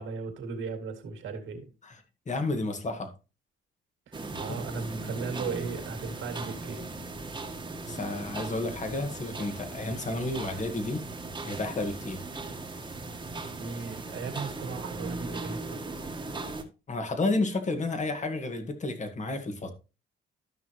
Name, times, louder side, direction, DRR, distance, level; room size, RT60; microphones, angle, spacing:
voice 1, 0.0-1.7 4.1-7.1 13.3-15.8, right 4 dB, 75° right, 2.2 m, -37 dB
voice 2, 2.3-3.1 4.7-5.1 7.8-11.0 11.4-12.2 16.9-19.7, left 2 dB, 35° left, 1.9 m, -31 dB
sound 1, 4.1-16.6, right 3 dB, 20° right, 1.5 m, -38 dB
13.0 x 6.1 x 3.1 m
cardioid pair, 90°, 20 cm